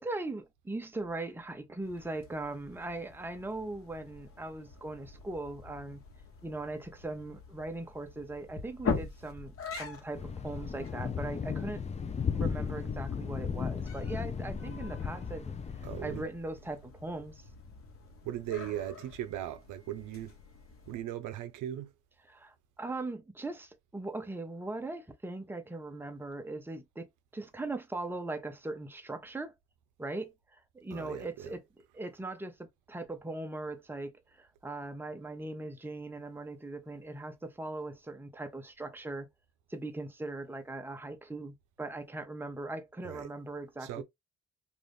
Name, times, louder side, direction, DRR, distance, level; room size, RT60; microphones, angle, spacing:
voice 1, 0.0-6.0 6.4-11.8 12.3-15.5 16.0-17.4 22.3-27.1 27.3-29.5 30.0-31.6 31.9-34.1 34.4-39.3 39.7-44.0, right 2 dB, 5° right, 0.7 m, -40 dB
sound 1, 1.8-21.0, left 5 dB, 45° left, 1.1 m, -44 dB
Thunder, 10.1-16.2, left 6 dB, 25° left, 0.4 m, -35 dB
voice 2, 15.8-16.3 18.2-20.4 20.9-21.9 30.9-31.6 43.0-43.3 43.8-44.0, right 12 dB, 90° right, 0.6 m, -38 dB
2.5 x 2.5 x 3.4 m
cardioid pair, 90°, 30 cm